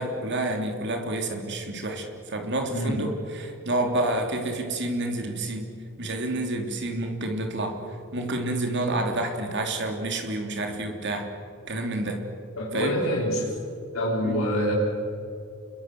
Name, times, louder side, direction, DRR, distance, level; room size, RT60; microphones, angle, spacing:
voice 1, 0.0-5.7 6.0-7.8 8.1-11.3 11.7-12.2 12.7-13.0 14.2-14.4, right 2 dB, 50° right, 4 dB, 3.4 m, -29 dB
voice 2, 12.6-13.5 13.9-14.7, equal, 65° left, -3 dB, 4.1 m, -26 dB
28.5 x 22.5 x 7.9 m, 2.5 s
head